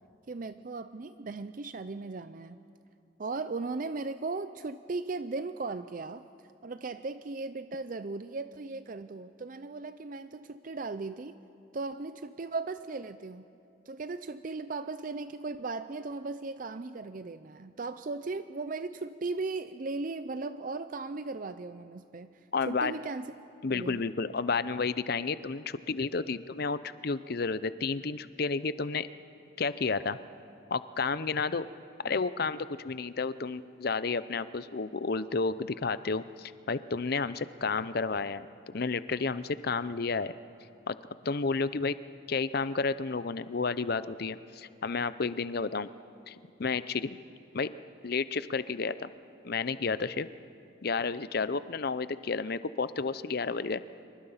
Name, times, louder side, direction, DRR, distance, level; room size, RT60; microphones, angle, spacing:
voice 1, 0.3-2.6 3.2-6.3 6.6-11.4 11.7-13.4 13.9-22.3 22.7-23.3 23.7-24.0, right 3 dB, 40° right, 12 dB, 0.5 m, -37 dB
voice 2, 22.5-22.9 23.6-29.1 29.6-30.2 30.7-31.7 32.0-40.3 40.9-41.0 41.2-41.9 42.3-45.9 46.3-47.2 47.5-47.7 48.0-49.1 49.4-50.3 50.8-53.8, left 4 dB, 50° left, 15 dB, 0.6 m, -31 dB
27.0 x 24.0 x 5.7 m, 2.6 s
head